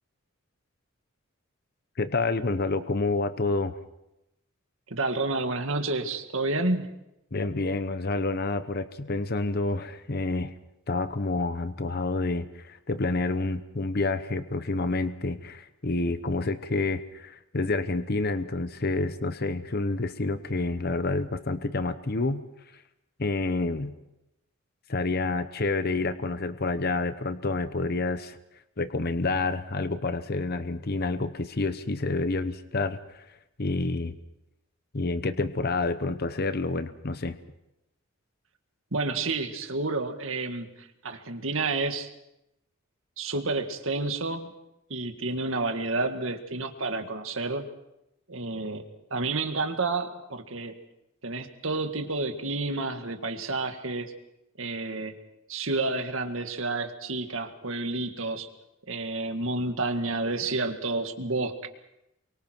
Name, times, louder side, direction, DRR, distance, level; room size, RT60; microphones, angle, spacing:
voice 1, 2.0-3.7 7.3-10.5 10.9-22.4 23.2-23.9 24.9-28.4 28.8-33.3 33.6-34.1 34.9-37.4, left 3 dB, 45° left, 11 dB, 0.9 m, -28 dB
voice 2, 4.9-6.9 38.9-42.1 43.2-44.5 44.9-47.6 48.3-48.8 49.1-50.7 51.2-54.1 54.6-55.1 55.5-58.5 58.9-61.7, right 3 dB, 70° right, 6 dB, 2.0 m, -30 dB
28.5 x 24.0 x 4.6 m, 0.86 s
head